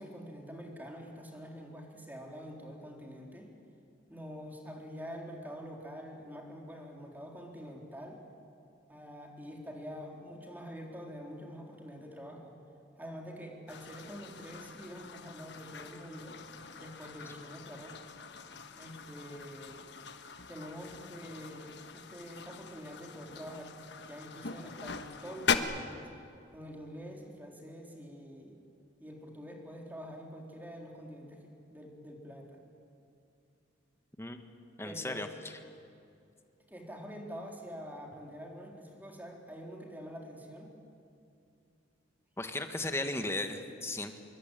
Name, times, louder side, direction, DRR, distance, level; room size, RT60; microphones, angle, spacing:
voice 1, 0.0-3.5 4.1-8.2 8.9-12.6 13.0-16.4 16.8-18.0 18.8-19.8 20.5-26.1 26.5-28.6 29.0-32.6 34.8-35.2 36.7-40.7, equal, 10° right, 0 dB, 4.0 m, -46 dB
sound 1, 13.7-25.6, left 6 dB, 65° left, 1.3 m, -41 dB
voice 2, 34.8-35.3 42.4-44.2, left 2 dB, 15° left, 7 dB, 1.7 m, -35 dB
25.5 x 22.5 x 9.2 m, 2.6 s
head